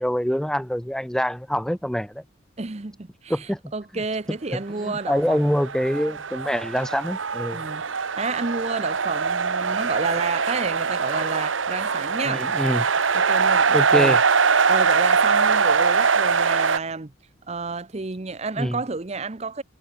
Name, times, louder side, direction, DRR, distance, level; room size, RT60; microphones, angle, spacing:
voice 1, 0.0-2.2 3.3-3.6 4.8-7.6 12.2-12.8 13.7-14.2 18.6-18.8, equal, 5° left, 1.1 m, -25 dB
voice 2, 2.6-5.5 7.5-12.5 13.1-14.2 14.7-17.1 17.5-19.6, right 4 dB, 35° right, 0.8 m, -30 dB
sound 1, 5.3-16.8, right 5 dB, 85° right, 1.1 m, -22 dB
head